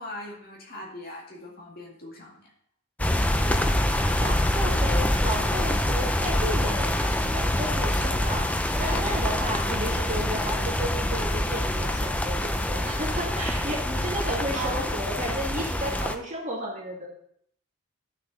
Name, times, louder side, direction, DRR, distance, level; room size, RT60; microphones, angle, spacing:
voice 1, 0.0-2.5 14.3-14.9, right 1 dB, 45° left, -2 dB, 2.2 m, -39 dB
sound 1, 3.0-16.1, left 1 dB, 5° left, 0.4 m, -25 dB
voice 2, 3.3-3.8 4.2-17.1, equal, 35° right, -2 dB, 2.1 m, -33 dB
11.5 x 6.5 x 4.0 m, 0.68 s
head